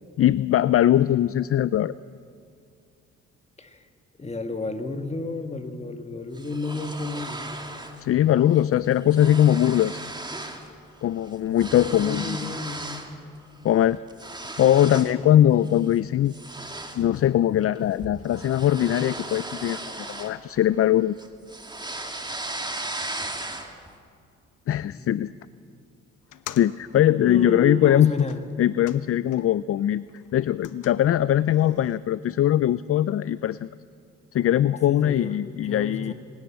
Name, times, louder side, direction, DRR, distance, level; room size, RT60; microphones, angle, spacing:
voice 1, 0.2-1.9 8.0-10.0 11.0-12.5 13.6-14.0 14.6-16.3 17.0-21.2 24.7-25.3 26.6-28.1 28.6-30.0 30.3-33.7 34.3-36.1, left 11 dB, 50° left, 17 dB, 0.5 m, -21 dB
voice 2, 4.2-7.6 11.9-13.0 14.6-15.5 24.8-25.3 27.2-28.4 34.9-35.4 35.6-36.1, left 2 dB, 20° left, 7 dB, 2.0 m, -32 dB
sound 1, 6.3-8.0 8.3-8.6 8.8-10.7 11.0-13.1 13.6-15.2 15.6-15.9 16.3-20.8 21.2-23.9, right 2 dB, 15° right, 2.4 m, -36 dB
sound 2, 26.2-29.7 30.0-32.0, left 12 dB, 80° left, 1.1 m, -46 dB
26.5 x 17.5 x 7.6 m, 2.4 s
cardioid pair, 90°, 30 cm